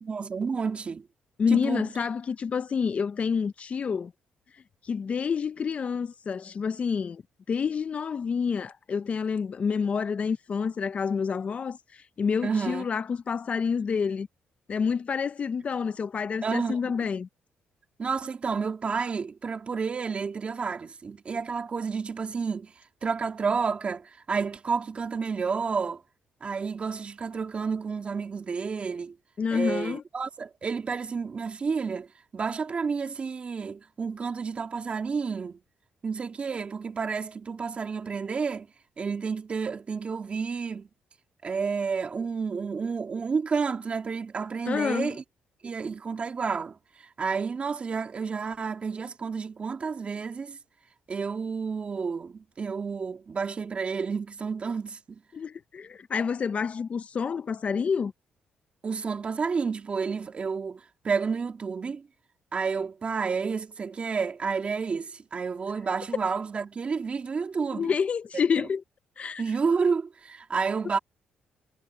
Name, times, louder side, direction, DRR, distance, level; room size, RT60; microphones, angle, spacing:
voice 1, 0.0-1.1 1.5-1.9 12.4-12.9 16.4-16.9 18.0-22.7 23.0-26.0 26.4-29.1 29.5-32.1 32.3-35.6 36.0-38.7 39.0-40.9 41.4-45.2 45.6-50.6 51.1-55.2 58.8-62.1 62.5-67.9 69.4-71.0, right 5 dB, 40° right, 2.7 m, -30 dB
voice 2, 1.4-4.1 4.8-7.2 7.5-14.3 14.7-17.3 29.4-30.0 44.7-45.2 55.3-58.1 67.7-68.8 69.2-69.4, left 6 dB, 45° left, 0.7 m, -28 dB
cardioid pair, 95°, 3 cm